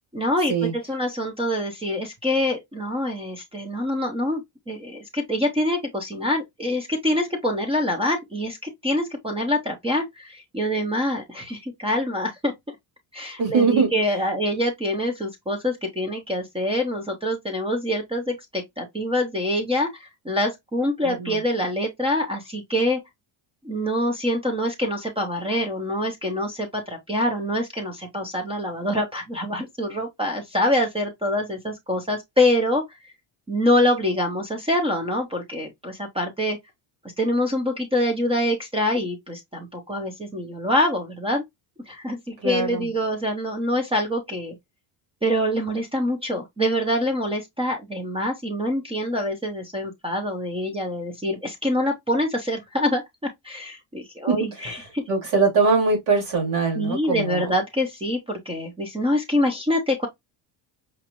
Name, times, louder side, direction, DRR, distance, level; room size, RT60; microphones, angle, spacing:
voice 1, 0.1-8.6 8.8-12.5 13.1-23.0 23.6-32.8 33.5-36.6 37.2-41.4 41.9-44.5 45.2-55.0 56.7-60.1, left 1 dB, 10° right, 0.5 m, -25 dB
voice 2, 13.4-13.9 21.0-21.4 42.4-42.9 54.3-54.4 55.1-57.4, right 4 dB, 75° right, 2.6 m, -21 dB
5.1 x 2.3 x 2.8 m
cardioid pair, 170°, 48 cm